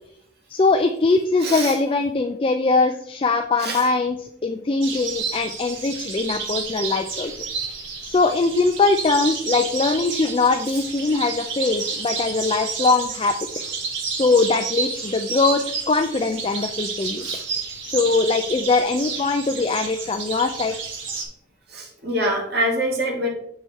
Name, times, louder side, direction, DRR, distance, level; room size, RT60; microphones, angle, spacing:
voice 1, 0.5-7.3 8.1-13.3 14.1-15.6 15.9-17.3 17.8-20.7, left 3 dB, 30° left, 6 dB, 0.4 m, -21 dB
voice 2, 1.4-1.8 3.6-3.9 10.7-10.8 17.2-17.4 21.7-23.3, right 1 dB, 55° right, 0 dB, 1.9 m, -25 dB
sound 1, 4.8-21.2, right 5 dB, 75° right, 1.6 m, -30 dB
7.3 x 4.7 x 4.1 m, 0.71 s
head